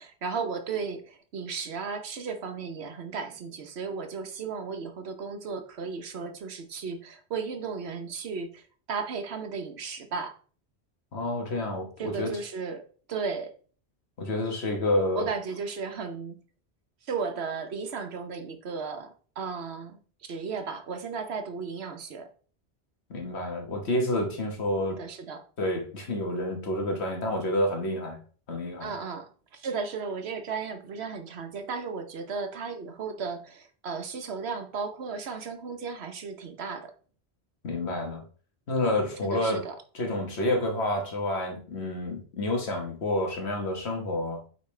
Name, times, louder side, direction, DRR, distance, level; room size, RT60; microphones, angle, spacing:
voice 1, 0.0-10.3 12.0-13.5 15.1-16.4 17.0-22.3 24.9-25.4 28.8-36.9 39.2-39.8, right 5 dB, 75° right, 7 dB, 1.1 m, -35 dB
voice 2, 11.1-12.4 14.2-15.3 23.1-25.0 25.6-28.2 28.5-28.9 37.6-38.2 38.7-39.6 39.9-44.4, left 1 dB, 75° left, 3 dB, 1.5 m, -29 dB
8.4 x 4.1 x 3.2 m, 0.42 s
omnidirectional pair, 1.1 m